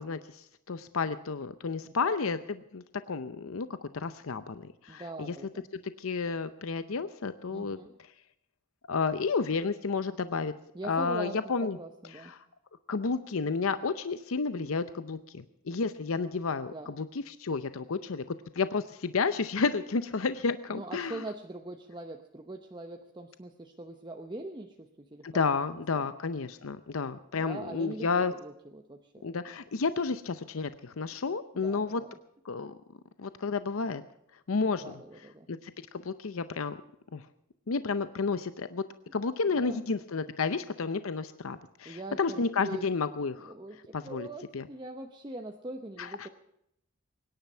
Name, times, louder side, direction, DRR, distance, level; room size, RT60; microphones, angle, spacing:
voice 1, 0.0-5.3 5.7-7.8 8.9-10.5 10.8-11.8 12.1-12.4 12.9-18.2 18.5-21.2 25.2-28.3 29.2-32.0 32.4-32.8 33.2-34.0 34.5-35.0 35.5-36.8 37.1-37.2 37.7-38.8 39.1-43.5 43.9-44.3 44.5-44.7 46.0-46.3, left 4 dB, 75° left, 12 dB, 0.7 m, -31 dB
voice 2, 1.8-2.2 4.9-5.7 7.5-7.9 10.7-12.3 16.7-16.9 20.7-25.4 25.9-26.1 27.4-29.3 31.6-32.1 34.8-35.5 39.5-39.8 41.8-42.8 43.4-46.3, right 2 dB, 20° right, 4 dB, 0.9 m, -42 dB
23.5 x 10.5 x 5.6 m, 0.78 s
head